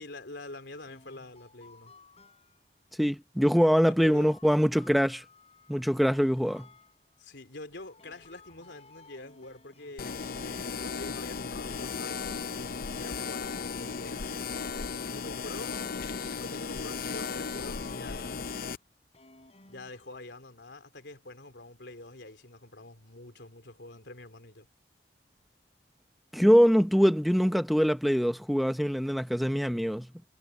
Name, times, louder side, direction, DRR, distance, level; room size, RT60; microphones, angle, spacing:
voice 1, 0.0-1.9 3.8-4.3 7.2-12.2 12.6-14.3 15.0-18.4 19.6-24.7, left 2 dB, 90° left, 3.4 m, -46 dB
sound 1, 0.8-2.8 4.1-7.3 7.7-10.8 11.2-14.8 15.5-18.6 19.1-20.6, left 3 dB, 35° left, 6.2 m, -58 dB
voice 2, 3.0-5.2 5.7-6.7 26.3-30.1, equal, ahead, 0.8 m, -23 dB
sound 2, 10.0-18.8, left 5 dB, 55° left, 0.6 m, -35 dB
head